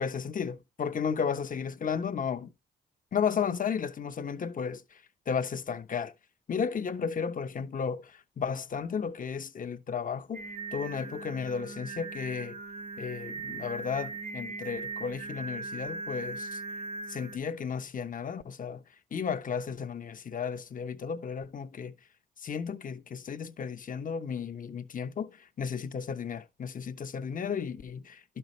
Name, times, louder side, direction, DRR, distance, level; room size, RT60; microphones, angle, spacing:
voice 1, 0.0-2.5 3.1-6.1 6.5-12.6 13.0-16.6 17.1-18.8 19.1-21.9 22.4-28.4, left 6 dB, 45° left, 0.9 m, -34 dB
Singing, 10.3-17.4, right 3 dB, 40° right, 0.8 m, -39 dB
11.5 x 5.6 x 3.1 m
supercardioid pair, 65°, 20 cm